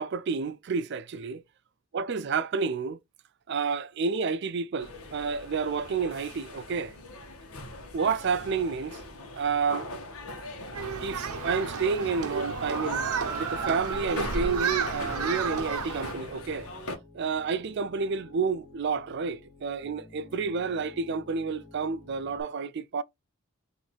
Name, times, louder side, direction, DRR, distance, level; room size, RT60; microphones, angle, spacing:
voice 1, 0.0-1.4 1.9-3.0 3.5-6.9 7.9-9.0 9.3-9.9 11.0-16.7 17.1-23.0, right 5 dB, 50° right, 0.4 m, -30 dB
sound 1, 4.8-17.0, left 1 dB, 85° left, 1.2 m, -40 dB
Human group actions, 10.7-16.1, right 6 dB, 90° right, 0.7 m, -32 dB
Piano, 12.0-22.4, left 3 dB, 55° left, 1.4 m, -50 dB
4.1 x 2.7 x 4.4 m
head